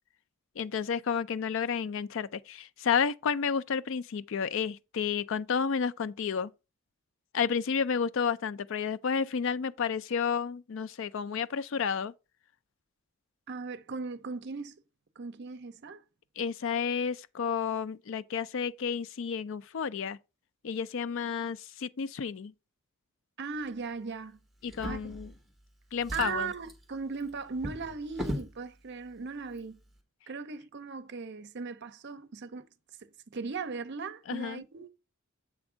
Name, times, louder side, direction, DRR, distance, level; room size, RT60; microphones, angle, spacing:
voice 1, 0.6-6.5 7.3-12.1 16.4-20.2 20.6-22.5 24.6-25.3 25.9-26.5 34.3-34.6, left 6 dB, 60° left, 0.4 m, -31 dB
voice 2, 13.5-14.8 15.2-16.0 23.4-24.4 24.8-25.1 26.1-29.8 30.3-32.7 33.0-34.9, right 4 dB, 55° right, 0.6 m, -38 dB
Drawer open or close, 24.6-25.6 26.0-28.6 29.5-29.6 30.0-30.1, equal, ahead, 1.1 m, -39 dB
7.4 x 3.5 x 4.9 m
head